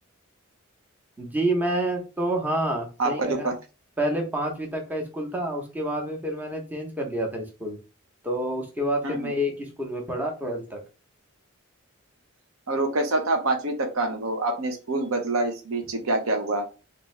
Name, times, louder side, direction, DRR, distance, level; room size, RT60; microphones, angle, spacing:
voice 1, 1.2-3.5 4.0-7.8 8.2-10.8, right 1 dB, 10° right, 1 dB, 0.8 m, -28 dB
voice 2, 3.0-3.5 9.0-9.3 12.7-16.6, right 2 dB, 80° right, 4 dB, 0.9 m, -26 dB
3.5 x 2.7 x 3.2 m, 0.31 s
head